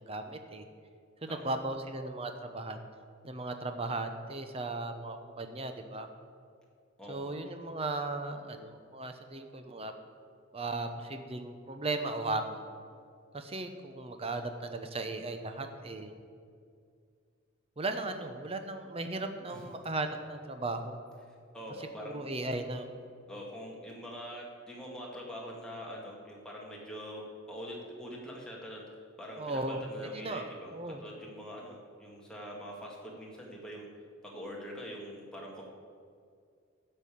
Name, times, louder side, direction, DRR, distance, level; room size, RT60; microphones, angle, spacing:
voice 1, 0.1-0.6 1.2-2.8 3.2-6.1 7.1-9.9 10.5-12.7 13.3-16.1 17.8-21.0 22.0-22.9 29.4-29.8 30.1-31.0, right 2 dB, 30° right, 7 dB, 0.9 m, -36 dB
voice 2, 7.0-7.4 19.5-19.7 21.5-22.3 23.3-28.8 29.2-30.7 31.0-33.9 34.2-35.7, equal, 5° left, -3 dB, 2.0 m, -44 dB
12.0 x 5.6 x 8.5 m, 2.2 s
head